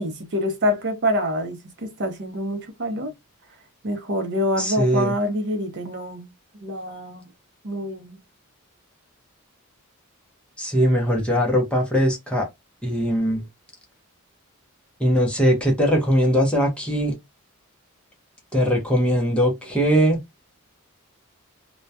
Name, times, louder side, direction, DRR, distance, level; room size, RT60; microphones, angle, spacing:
voice 1, 0.0-3.1 3.8-6.3 6.6-7.3 7.6-8.1, equal, 55° right, 0.6 m, -26 dB
voice 2, 4.6-5.1 10.6-12.5 12.8-13.4 15.0-17.1 18.5-20.2, equal, 5° left, 0.6 m, -20 dB
2.2 x 2.2 x 2.6 m
head